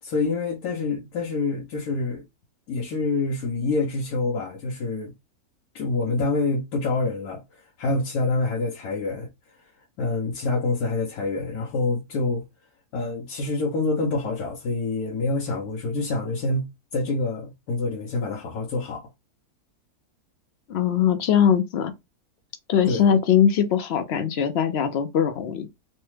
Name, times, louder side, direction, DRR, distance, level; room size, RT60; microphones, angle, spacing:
voice 1, 0.0-2.2 2.7-5.1 5.7-9.3 10.0-12.4 12.9-19.0 22.8-23.1, left 3 dB, 90° left, 1.2 m, -26 dB
voice 2, 20.7-21.9 22.7-25.7, left 8 dB, 65° left, 0.6 m, -21 dB
3.2 x 2.0 x 3.1 m
omnidirectional pair, 1.5 m